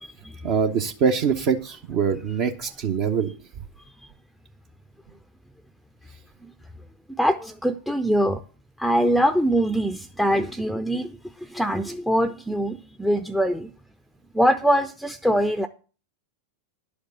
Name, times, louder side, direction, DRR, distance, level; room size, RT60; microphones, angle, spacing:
voice 1, 0.4-3.3, right 6 dB, 45° right, 4 dB, 0.9 m, -23 dB
voice 2, 7.2-8.4 8.8-11.1 11.5-13.7 14.3-15.7, equal, ahead, 10 dB, 0.6 m, -22 dB
11.0 x 5.1 x 8.0 m, 0.36 s
figure-of-eight pair, 90°, 0 cm